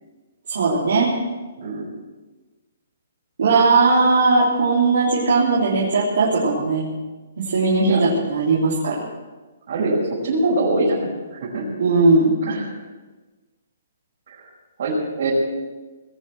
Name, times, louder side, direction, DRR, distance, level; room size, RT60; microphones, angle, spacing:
voice 1, 0.5-1.1 3.4-6.9 7.5-9.0 11.8-12.3, right 3 dB, 70° right, -6 dB, 3.5 m, -18 dB
voice 2, 1.6-1.9 7.8-8.0 9.7-11.7 12.4-12.7 14.3-14.5 14.8-15.3, right 2 dB, 55° right, -7 dB, 5.5 m, -23 dB
20.5 x 7.6 x 7.9 m, 1.3 s
hypercardioid pair, 170°, 0 cm